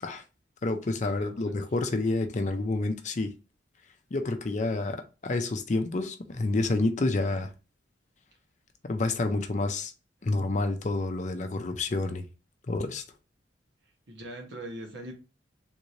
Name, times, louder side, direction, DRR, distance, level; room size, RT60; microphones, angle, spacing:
voice 1, 0.6-3.3 4.1-7.5 8.8-9.9 10.2-12.3 12.7-13.0, left 2 dB, 40° left, 0.4 m, -29 dB
voice 2, 1.2-1.5 14.1-15.1, right 1 dB, 75° right, 1.1 m, -41 dB
3.6 x 2.7 x 3.1 m
head